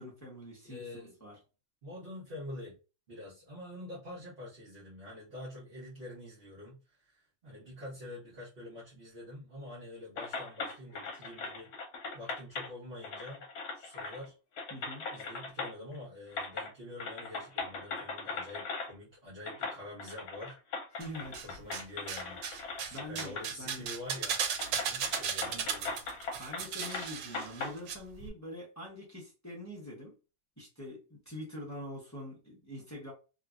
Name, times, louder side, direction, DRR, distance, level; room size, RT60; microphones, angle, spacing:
voice 1, 0.0-1.4 14.7-15.1 21.0-21.5 22.9-23.9 25.4-25.7 26.4-30.1 30.6-33.1, equal, 15° left, -5 dB, 0.6 m, -45 dB
voice 2, 0.6-1.1 1.8-2.7 3.1-11.7 12.1-13.4 13.7-14.3 15.1-20.5 21.4-22.4 22.8-25.9, left 1 dB, 40° right, -8 dB, 1.2 m, -46 dB
sound 1, 10.2-12.7 13.0-14.3 14.6-16.0 16.3-16.7 17.0-18.9 19.5-23.5 23.9-24.0 24.6-27.7, left 4 dB, 65° left, 1.1 m, -39 dB
sound 2, 21.0-21.8 22.1-28.0 28.2-28.3, right 7 dB, 85° right, 1.3 m, -36 dB
3.0 x 2.7 x 2.4 m, 0.32 s
omnidirectional pair, 1.9 m